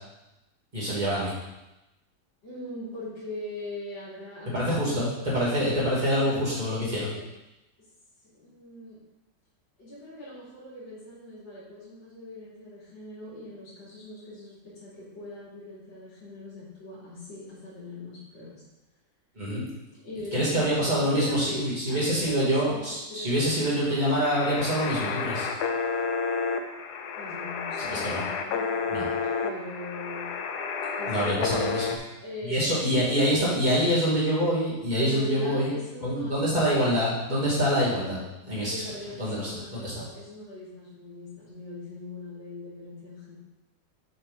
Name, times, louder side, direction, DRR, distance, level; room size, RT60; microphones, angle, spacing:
voice 1, 0.7-1.3 4.5-7.1 19.4-19.6 20.3-25.5 27.9-28.2 28.9-29.0 31.1-31.8 32.5-35.7 36.0-38.2 38.4-38.7 39.2-39.9, equal, 25° right, -8 dB, 2.8 m, -25 dB
voice 2, 2.4-7.3 8.2-9.0 9.8-18.6 20.0-24.0 27.1-29.0 29.4-30.3 31.0-31.8 32.2-34.0 35.1-37.0 38.7-43.4, left 1 dB, 85° left, -11 dB, 3.5 m, -41 dB
sound 1, 24.2-32.0, left 5 dB, 70° left, 1.2 m, -30 dB
7.0 x 6.6 x 3.8 m, 0.96 s
omnidirectional pair, 1.9 m